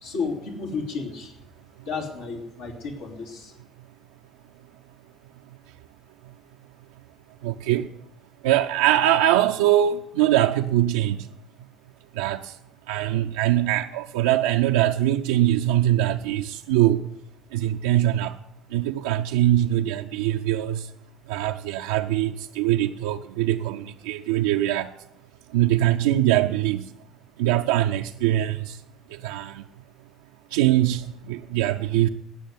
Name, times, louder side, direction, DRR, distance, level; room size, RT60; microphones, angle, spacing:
voice 1, 0.0-1.3 1.9-3.5, left 4 dB, 75° left, 3.1 m, -32 dB
voice 2, 7.4-7.9 8.4-11.3 12.2-12.5 12.9-17.1 17.5-18.4 18.7-20.9 21.3-24.9 25.5-26.9 27.4-28.8 29.1-29.6 30.5-32.1, right 13 dB, 70° right, 0.4 m, -22 dB
17.0 x 6.7 x 9.4 m
figure-of-eight pair, 55°, 0 cm